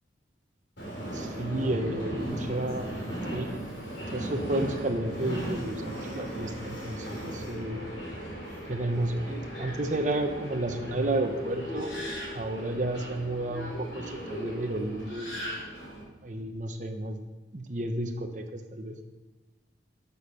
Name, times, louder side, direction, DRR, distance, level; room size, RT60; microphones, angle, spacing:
Subway metro underground, 0.8-16.0, right 1 dB, 70° left, 3.3 m, -37 dB
voice 1, 1.1-7.8 8.7-11.9 12.3-15.4 15.8-17.2 17.5-19.0, right 1 dB, 40° right, 4 dB, 0.9 m, -32 dB
11.0 x 7.0 x 5.7 m, 1.2 s
head